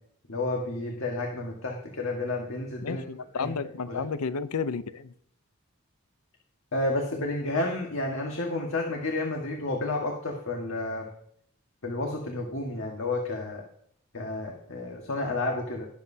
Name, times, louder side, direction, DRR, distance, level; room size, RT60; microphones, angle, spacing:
voice 1, 0.3-3.0 3.3-3.5 3.9-4.0 6.7-11.1 11.8-13.6 14.1-15.9, left 2 dB, 60° left, 0 dB, 1.6 m, -31 dB
voice 2, 2.8-5.1, left 5 dB, 80° left, 14 dB, 0.6 m, -32 dB
19.5 x 7.5 x 2.8 m, 0.67 s
head